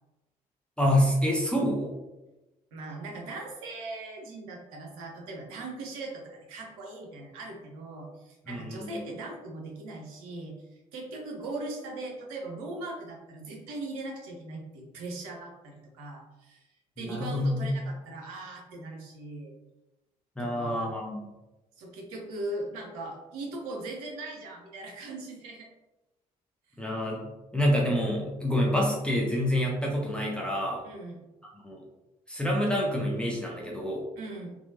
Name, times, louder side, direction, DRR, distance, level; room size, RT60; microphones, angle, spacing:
voice 1, 0.8-1.9 8.5-9.0 17.0-17.7 20.4-21.3 26.8-27.3 27.5-30.8 31.6-31.8 32.3-34.0, equal, 5° left, -3 dB, 0.7 m, -27 dB
voice 2, 2.7-16.6 17.0-19.5 20.4-20.9 21.8-25.7 30.8-31.2 34.2-34.6, right 2 dB, 75° right, 0 dB, 0.6 m, -39 dB
2.9 x 2.2 x 2.6 m, 1.0 s
figure-of-eight pair, 45°, 19 cm